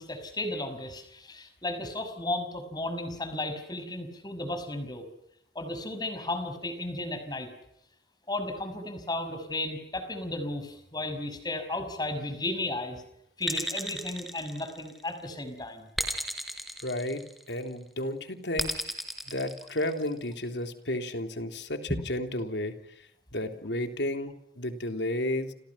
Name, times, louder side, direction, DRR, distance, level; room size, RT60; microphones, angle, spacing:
voice 1, 0.0-5.1 5.5-7.5 8.3-13.0 13.4-15.9 21.9-22.0, left 2 dB, 25° left, 5.8 m, -34 dB
sound 1, 13.4-15.1 16.0-17.6 18.6-20.2, equal, ahead, 4.5 m, -34 dB
voice 2, 16.8-18.8 19.3-22.7 23.3-25.5, left 1 dB, 85° left, 3.5 m, -32 dB
30.0 x 28.0 x 5.8 m
head